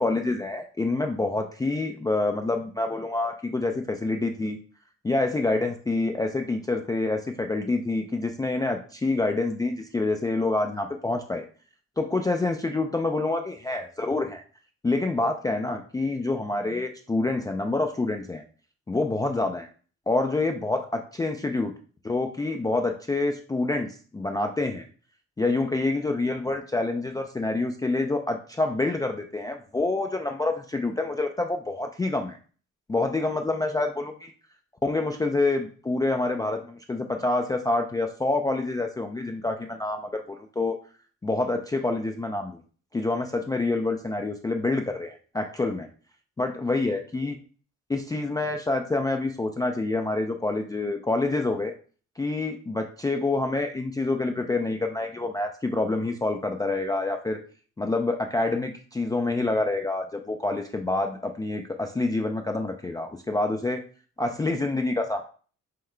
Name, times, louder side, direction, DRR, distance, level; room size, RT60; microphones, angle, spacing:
voice 1, 0.0-4.6 5.0-11.5 12.0-14.4 14.8-18.4 18.9-19.7 20.1-21.7 22.0-24.8 25.4-32.4 32.9-34.3 34.8-40.8 41.2-42.6 42.9-45.9 46.4-47.4 47.9-51.7 52.2-57.4 57.8-63.8 64.2-65.2, left 2 dB, 15° left, 3 dB, 0.3 m, -27 dB
5.7 x 2.2 x 3.3 m, 0.41 s
cardioid pair, 90°, 30 cm